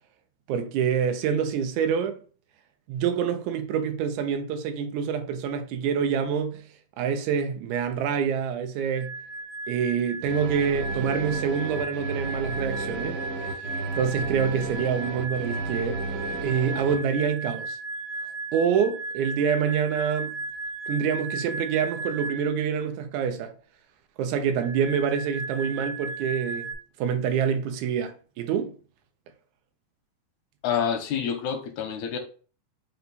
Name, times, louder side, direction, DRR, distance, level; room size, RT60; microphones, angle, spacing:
voice 1, 0.5-2.2 2.9-6.6 7.0-9.1 9.7-13.5 14.0-16.0 16.4-17.8 18.5-20.4 20.9-23.5 24.2-26.7 27.0-28.8, right 7 dB, 85° right, 2.0 m, -26 dB
sound 1, 8.9-22.7 24.5-26.7, right 2 dB, 10° right, 0.6 m, -36 dB
sound 2, 10.2-16.9, right 3 dB, 65° right, 1.6 m, -33 dB
voice 2, 30.6-32.2, left 8 dB, 85° left, 2.1 m, -27 dB
5.4 x 2.2 x 4.0 m
omnidirectional pair, 3.4 m